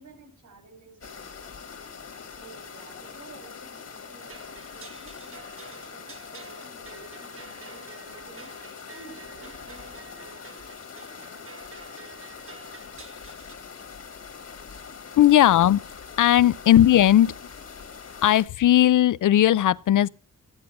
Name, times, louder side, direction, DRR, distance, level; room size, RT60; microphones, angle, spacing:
voice 1, 0.0-1.7 2.3-10.6 16.4-16.5, right 3 dB, 75° right, 4.9 m, -51 dB
sound 1, 1.0-18.5, left 6 dB, 55° left, 1.6 m, -43 dB
sound 2, 4.2-13.6, right 3 dB, 45° right, 1.4 m, -48 dB
voice 2, 15.2-15.8 16.2-17.3 18.2-20.1, left 12 dB, 80° left, 0.5 m, -17 dB
14.0 x 9.7 x 5.2 m
wide cardioid pair, 165°, 31 cm